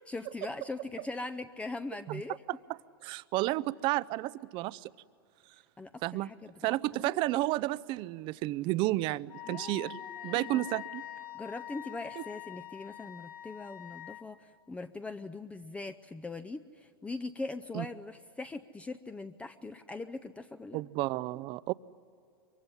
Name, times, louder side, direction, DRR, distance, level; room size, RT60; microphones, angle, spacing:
voice 1, 0.1-2.4 5.8-7.2 9.5-10.8 11.3-20.8, left 3 dB, 10° left, 9 dB, 0.6 m, -41 dB
voice 2, 3.0-4.9 6.0-6.3 6.6-11.0 17.7-17.9 20.7-21.7, right 18 dB, 40° right, 18 dB, 0.6 m, -32 dB
Wind instrument woodwind instrument, 9.3-14.2, left 13 dB, 35° left, 1.9 m, -44 dB
24.0 x 23.5 x 10.0 m, 2.6 s
hypercardioid pair, 110°, 12 cm